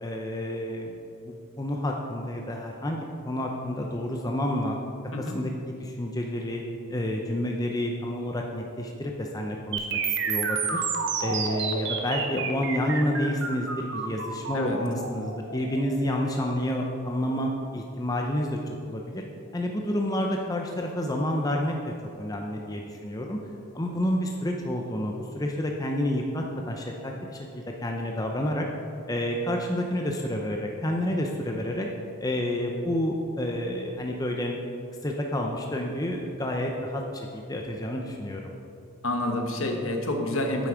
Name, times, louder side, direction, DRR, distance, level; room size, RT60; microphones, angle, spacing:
voice 1, 0.0-1.0 1.2-4.8 5.2-6.6 6.9-10.0 10.3-10.8 11.2-19.2 19.5-21.7 22.2-23.4 23.7-28.6 29.1-31.9 32.2-34.6 35.0-38.5, left 1 dB, 15° left, 1 dB, 0.6 m, -29 dB
sound 1, 9.7-17.7, right 5 dB, 55° right, 1.0 m, -31 dB
voice 2, 39.0-40.7, left 1 dB, 65° left, 3 dB, 1.2 m, -28 dB
9.3 x 8.0 x 5.0 m, 2.4 s
head